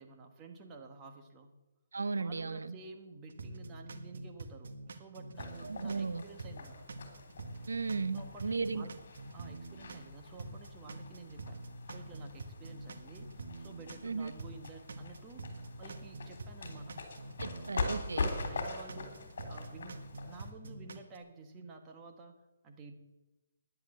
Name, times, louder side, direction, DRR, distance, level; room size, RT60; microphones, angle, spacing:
voice 1, 0.0-1.5 2.2-6.9 8.1-8.9 9.3-11.6 11.9-13.3 13.6-15.5 15.8-17.0 18.1-22.9, right 3 dB, 20° right, 4 dB, 1.4 m, -51 dB
voice 2, 1.9-2.7 5.6-6.2 7.7-8.9 14.0-14.3 17.4-18.3, right 4 dB, 85° right, 16 dB, 0.8 m, -35 dB
sound 1, 3.3-6.1 6.4-10.1 10.4-14.1 14.4-18.1 18.4-21.2, right 2 dB, 65° right, 1.6 m, -46 dB
sound 2, 5.3-20.5, left 3 dB, 55° left, 3.3 m, -43 dB
10.5 x 10.0 x 7.7 m, 1.1 s
hypercardioid pair, 155°, 0 cm